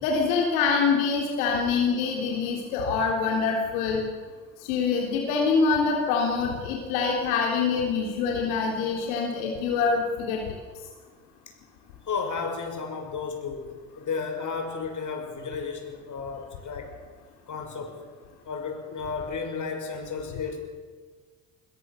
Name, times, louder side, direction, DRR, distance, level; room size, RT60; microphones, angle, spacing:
voice 1, 0.0-4.1 4.6-10.4, left 5 dB, 80° left, 0 dB, 3.5 m, -25 dB
voice 2, 12.0-17.0 17.5-18.0 18.4-20.6, left 5 dB, 45° left, 4 dB, 6.3 m, -33 dB
22.5 x 22.0 x 7.0 m, 1.5 s
hypercardioid pair, 60°, 42 cm